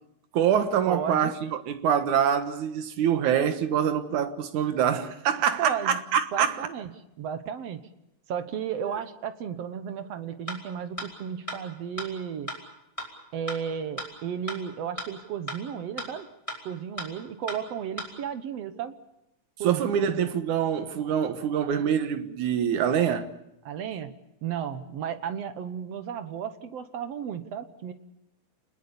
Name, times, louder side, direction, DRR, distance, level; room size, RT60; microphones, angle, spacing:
voice 1, 0.3-6.6 19.6-23.3, right 8 dB, 90° right, 2.8 m, -25 dB
voice 2, 0.9-1.4 5.6-6.0 6.3-6.9 7.2-7.8 8.3-12.5 13.3-16.3 16.7-18.9 19.6-20.3 23.7-24.1 24.4-27.9, right 8 dB, 65° right, 2.1 m, -34 dB
sound 1, 10.5-10.6 11.0-11.1 11.5-11.6 12.0-12.1 12.5-12.6 13.0-13.1 13.5-13.6 14.0-14.1 14.5-14.6 15.0-15.1 15.5-15.6 16.0-16.1 16.5-16.6 17.0-17.1 17.5-17.6 18.0-18.1, equal, 10° left, 4.7 m, -33 dB
28.0 x 20.5 x 7.0 m
omnidirectional pair, 3.3 m